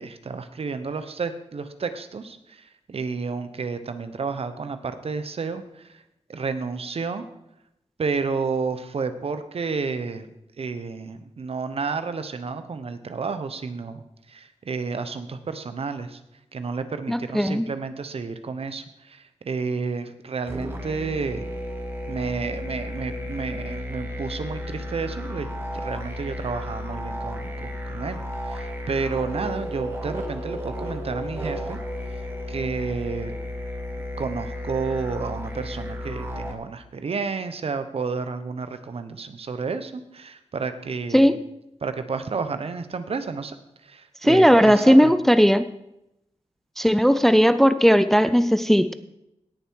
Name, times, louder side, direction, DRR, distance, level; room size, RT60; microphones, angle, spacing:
voice 1, 0.0-6.0 6.3-7.3 8.0-10.3 10.6-16.2 16.5-21.5 22.1-31.8 32.1-33.3 34.2-41.3 41.8-43.6 43.8-45.1, right 4 dB, 60° right, 10 dB, 1.0 m, -31 dB
voice 2, 17.1-17.7 41.1-41.3 44.2-45.7 46.8-48.9, equal, 5° left, 13 dB, 0.4 m, -17 dB
sound 1, 20.5-36.5, equal, 20° right, 1.9 m, -33 dB
18.0 x 7.0 x 4.8 m, 0.84 s
wide cardioid pair, 110°, 11 cm